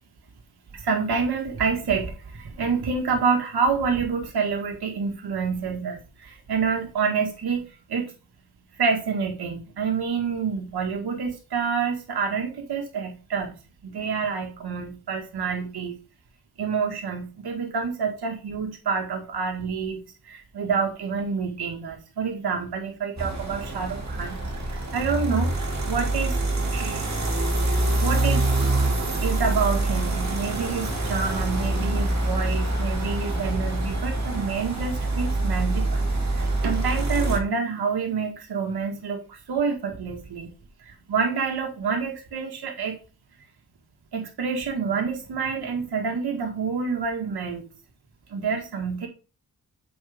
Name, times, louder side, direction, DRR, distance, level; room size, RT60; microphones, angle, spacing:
voice 1, 0.7-8.1 8.7-13.5 13.8-15.9 16.6-24.4 24.7-25.5 25.9-26.4 26.7-27.1 28.0-28.5 29.2-36.0 36.3-40.5 40.8-43.0 44.1-47.6 48.3-49.1, right 5 dB, 90° right, 2 dB, 1.8 m, -28 dB
sound 1, 23.2-37.4, right 2 dB, 45° right, 2.3 m, -25 dB
7.8 x 5.5 x 3.5 m, 0.33 s
cardioid pair, 55°, 38 cm